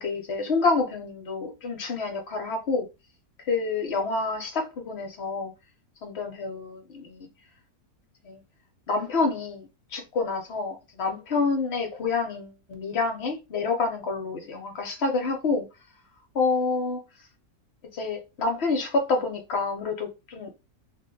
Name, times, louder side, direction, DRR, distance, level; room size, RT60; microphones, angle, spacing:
voice 1, 0.0-2.9 3.5-5.5 6.0-7.3 8.2-8.4 8.9-15.7 16.3-17.0 17.9-20.5, left 4 dB, 55° left, 0.8 m, -28 dB
2.7 x 2.1 x 3.7 m
omnidirectional pair, 1.6 m